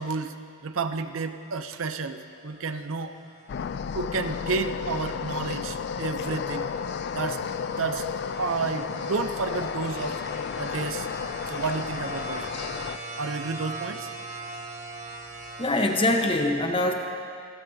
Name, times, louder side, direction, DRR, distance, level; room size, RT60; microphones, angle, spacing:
voice 1, 0.0-3.2 3.9-6.7 7.1-7.4 7.8-8.1 8.4-10.2 10.6-11.1 11.5-12.5 13.2-14.1, right 4 dB, 60° right, 9 dB, 0.6 m, -31 dB
sound 1, 1.6-16.3, right 2 dB, 30° right, 1.2 m, -42 dB
sound 2, 3.5-13.0, left 7 dB, 50° left, 0.3 m, -33 dB
voice 2, 15.6-16.9, left 1 dB, 25° left, 3 dB, 1.0 m, -23 dB
28.0 x 12.5 x 2.8 m, 2.3 s
head